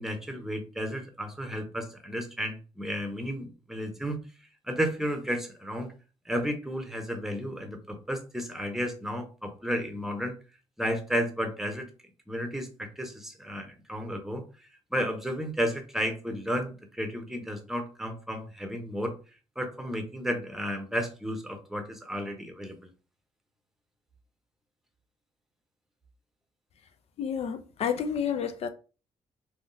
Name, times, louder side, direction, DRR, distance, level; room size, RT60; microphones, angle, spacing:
voice 1, 0.0-4.2 4.7-5.9 6.3-10.3 10.8-11.9 12.3-14.4 14.9-19.1 19.6-22.8, equal, 5° right, 0.9 m, -32 dB
voice 2, 27.2-28.7, left 7 dB, 60° left, 0.5 m, -30 dB
3.4 x 2.3 x 2.6 m
cardioid pair, 75°, 12 cm